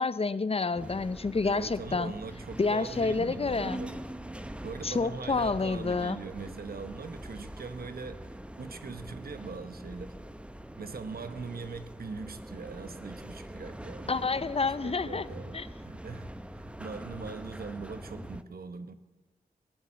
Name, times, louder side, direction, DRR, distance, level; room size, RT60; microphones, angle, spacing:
voice 1, 0.0-2.1 2.6-3.8 4.8-6.2 14.1-15.3 15.5-15.7, left 4 dB, 40° left, 15 dB, 0.6 m, -29 dB
sound 1, 0.7-18.4, right 1 dB, 5° right, 0.7 m, -43 dB
voice 2, 1.4-4.0 4.6-10.2 10.8-18.9, right 4 dB, 75° right, 10 dB, 1.0 m, -41 dB
19.0 x 7.2 x 8.6 m, 1.2 s
wide cardioid pair, 90°, 16 cm